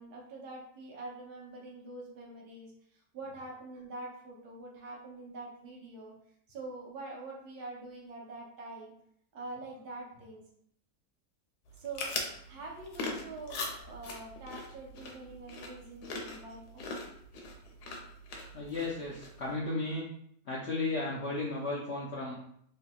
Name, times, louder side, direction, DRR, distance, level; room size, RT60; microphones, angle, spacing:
voice 1, 0.0-6.1 6.5-8.9 9.3-10.4 11.8-12.1 12.5-16.9, right 2 dB, 75° right, -2 dB, 1.3 m, -45 dB
sound 1, 11.7-19.5, left 3 dB, 90° left, 1.2 m, -41 dB
voice 2, 18.5-20.1 20.5-22.3, left 2 dB, 70° left, -5 dB, 0.6 m, -34 dB
3.2 x 2.7 x 2.2 m, 0.69 s
omnidirectional pair, 1.7 m